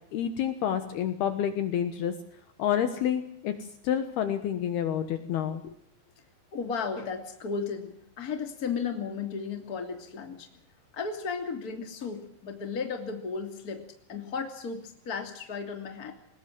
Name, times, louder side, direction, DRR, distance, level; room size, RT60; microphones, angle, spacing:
voice 1, 0.1-2.1 2.6-3.5 3.8-5.7, left 9 dB, 70° left, 9 dB, 2.9 m, -28 dB
voice 2, 6.5-10.5 10.9-13.8 14.1-16.1, left 5 dB, 25° left, 6 dB, 2.5 m, -34 dB
21.0 x 20.0 x 7.7 m, 0.67 s
omnidirectional pair, 5.3 m